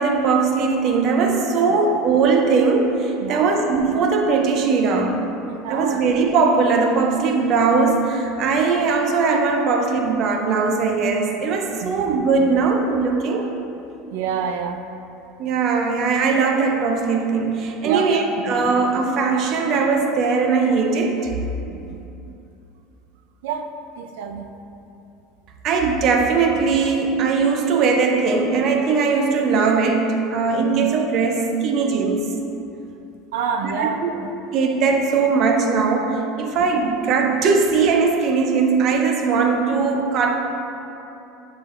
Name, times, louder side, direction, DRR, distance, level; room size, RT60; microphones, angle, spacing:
voice 1, 0.0-5.3 5.7-13.5 15.4-21.3 25.6-32.3 33.6-34.1 34.5-40.4, right 4 dB, 35° right, 3 dB, 0.5 m, -20 dB
voice 2, 3.2-3.6 5.5-6.0 11.8-12.0 13.3-13.5 14.1-14.8 17.8-18.1 18.5-18.6 21.7-22.0 23.4-23.7 24.0-24.5 33.3-34.3, right 6 dB, 90° right, 5 dB, 0.4 m, -28 dB
8.5 x 5.0 x 2.5 m, 2.8 s
cardioid pair, 170°, 0 cm